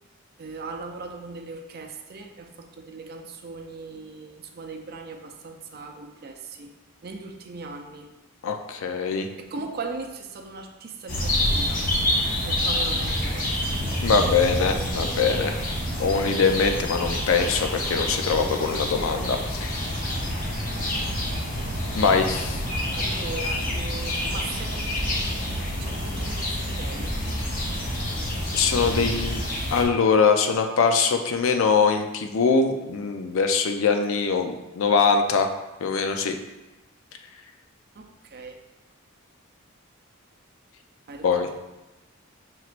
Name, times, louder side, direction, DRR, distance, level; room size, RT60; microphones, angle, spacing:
voice 1, 0.4-6.7 7.0-8.1 9.4-11.8 12.4-13.5 22.9-27.1 28.8-29.2 38.0-38.6 41.1-41.3, right 3 dB, 45° right, 3 dB, 0.4 m, -39 dB
voice 2, 8.4-9.3 14.0-15.6 16.0-19.7 21.9-22.6 28.5-29.4 29.7-35.5 35.8-36.4 41.2-41.5, left 5 dB, 65° left, 5 dB, 0.4 m, -22 dB
sound 1, 11.1-29.8, left 1 dB, 40° left, 0.7 m, -27 dB
5.6 x 3.0 x 2.5 m, 1.0 s
head